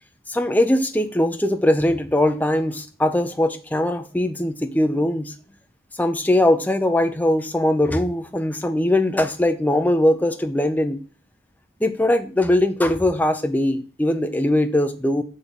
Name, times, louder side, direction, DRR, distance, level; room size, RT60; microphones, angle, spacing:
voice 1, 0.3-5.3 6.0-11.0 11.8-15.2, left 1 dB, 10° left, 7 dB, 0.5 m, -21 dB
5.9 x 4.1 x 5.0 m, 0.39 s
head